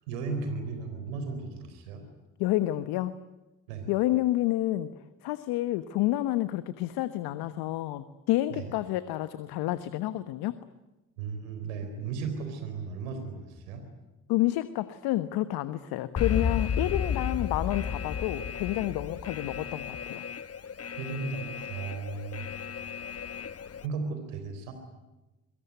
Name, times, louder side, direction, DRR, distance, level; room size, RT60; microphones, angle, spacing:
voice 1, 0.1-2.0 3.7-3.9 8.5-8.7 11.2-13.8 21.0-22.5 23.8-24.7, right 4 dB, 85° right, 6 dB, 4.0 m, -35 dB
voice 2, 2.4-3.1 3.9-4.9 5.2-10.6 14.3-20.2, left 15 dB, 80° left, 13 dB, 1.3 m, -29 dB
Alarm, 16.2-23.9, left 7 dB, 40° left, 1.2 m, -33 dB
26.5 x 24.0 x 9.4 m, 1.0 s
hypercardioid pair, 45°, 38 cm